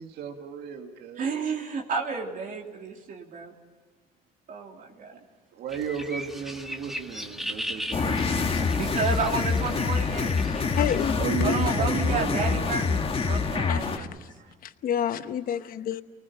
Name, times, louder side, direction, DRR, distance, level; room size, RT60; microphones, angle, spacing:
voice 1, 0.0-1.3 5.5-9.2 11.2-12.7 14.4-14.5, right 7 dB, 75° right, 3 dB, 2.3 m, -34 dB
voice 2, 1.2-3.5 4.5-5.1 8.7-10.4 11.4-14.1, right 4 dB, 55° right, 1 dB, 3.1 m, -31 dB
sound 1, 5.7-11.1, equal, ahead, 1.8 m, -38 dB
sound 2, 7.9-14.0, left 5 dB, 35° left, 1.9 m, -26 dB
voice 3, 10.7-11.1 11.4-11.7 13.7-14.3 14.6-16.0, left 10 dB, 60° left, 11 dB, 0.9 m, -29 dB
29.5 x 19.5 x 7.1 m, 1.3 s
cardioid pair, 110°, 17 cm